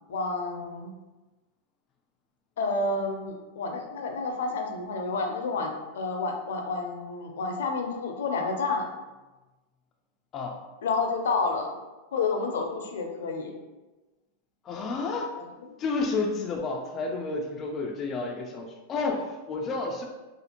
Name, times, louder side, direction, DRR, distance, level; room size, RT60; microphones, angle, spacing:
voice 1, 0.1-0.9 2.6-8.9 10.8-11.7 12.1-13.5, left 3 dB, 85° left, 3 dB, 0.5 m, -29 dB
voice 2, 14.6-15.3 15.8-20.1, left 3 dB, 25° left, 2 dB, 0.3 m, -30 dB
2.5 x 2.4 x 2.8 m, 1.1 s
supercardioid pair, 145°, 0 cm